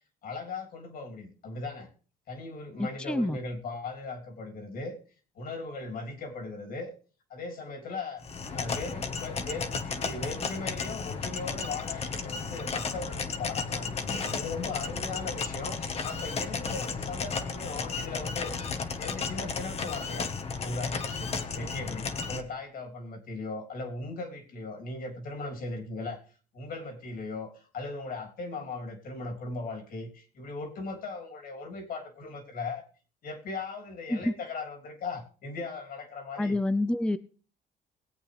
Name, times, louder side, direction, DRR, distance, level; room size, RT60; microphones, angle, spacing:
voice 1, 0.2-1.9 2.3-5.0 5.3-6.9 7.3-8.2 8.5-18.5 19.0-20.3 20.6-26.2 26.5-32.8 33.2-36.6, left 3 dB, 60° left, 2 dB, 3.4 m, -38 dB
voice 2, 2.8-3.4 34.1-34.3 36.4-37.2, left 1 dB, 5° left, 13 dB, 0.5 m, -27 dB
sound 1, 8.2-22.4, left 5 dB, 35° left, 1.4 m, -34 dB
20.5 x 8.3 x 3.4 m, 0.40 s
cardioid pair, 110°, 17 cm